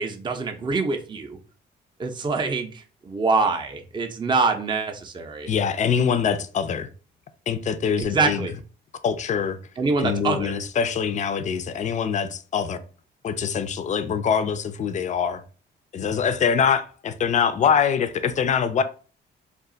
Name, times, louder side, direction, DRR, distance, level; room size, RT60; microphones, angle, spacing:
voice 1, 0.0-1.4 2.0-5.5 8.0-8.5 9.8-10.5, right 4 dB, 25° right, 0.5 m, -25 dB
voice 2, 5.5-6.9 7.5-8.5 9.0-9.6 10.0-12.8 13.2-15.4 15.9-18.8, left 7 dB, 35° left, 0.4 m, -24 dB
2.4 x 2.3 x 3.7 m
cardioid pair, 90°, 20 cm